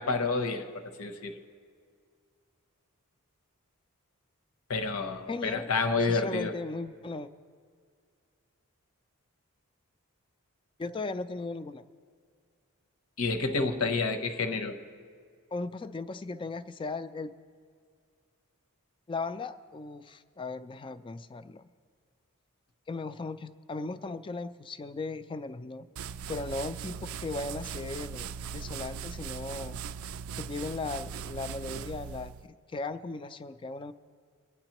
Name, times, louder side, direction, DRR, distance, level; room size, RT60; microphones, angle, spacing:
voice 1, 0.0-1.4 4.7-6.5 13.2-14.8, left 4 dB, 75° left, 7 dB, 0.8 m, -29 dB
voice 2, 5.3-5.7 6.0-7.3 10.8-11.8 15.5-17.3 19.1-21.7 22.9-25.9 26.3-29.8 30.4-32.3 32.7-33.9, left 3 dB, 20° left, 12 dB, 0.3 m, -37 dB
sound 1, 26.0-32.5, right 7 dB, 65° right, 0.3 m, -39 dB
22.0 x 9.6 x 3.0 m, 2.1 s
head